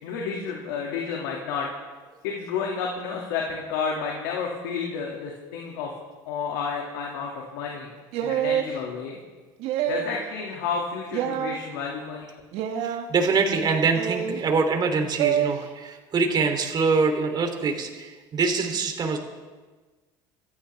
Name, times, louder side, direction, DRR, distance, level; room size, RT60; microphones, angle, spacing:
voice 1, 0.0-1.7 2.2-5.9 6.3-7.9 8.2-9.2 9.9-12.3, left 5 dB, 85° left, -1 dB, 2.3 m, -31 dB
sound 1, 8.1-8.7 9.6-10.2 11.1-11.6 12.5-13.0 13.9-14.4 15.2-15.5, right 10 dB, 70° right, 1.6 m, -26 dB
voice 2, 12.8-19.2, right 4 dB, 40° right, 4 dB, 3.1 m, -24 dB
25.5 x 14.5 x 3.5 m, 1.3 s
supercardioid pair, 90°, 11 cm